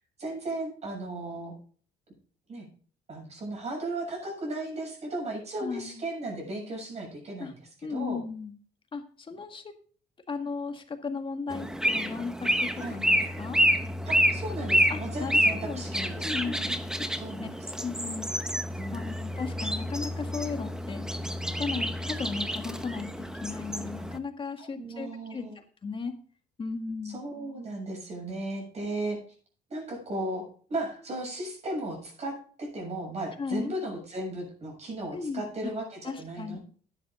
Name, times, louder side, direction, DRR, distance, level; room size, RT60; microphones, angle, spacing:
voice 1, 0.2-1.5 2.5-2.7 3.1-8.2 12.8-13.0 14.1-16.7 17.2-17.7 18.8-19.0 24.6-25.6 27.0-29.2 29.7-36.6, right 1 dB, 40° right, 0 dB, 7.1 m, -36 dB
voice 2, 5.6-6.0 7.4-7.5 7.8-8.5 8.9-9.7 10.3-13.6 14.9-15.8 16.2-16.8 17.4-17.5 17.8-18.3 18.9-21.0 21.6-26.1 26.6-27.2 33.4-33.7 35.1-35.4 36.1-36.6, left 4 dB, 30° left, 6 dB, 1.7 m, -36 dB
sound 1, 11.5-24.2, equal, 5° right, 0.9 m, -29 dB
11.5 x 10.0 x 3.8 m, 0.44 s
cardioid pair, 110°, 17 cm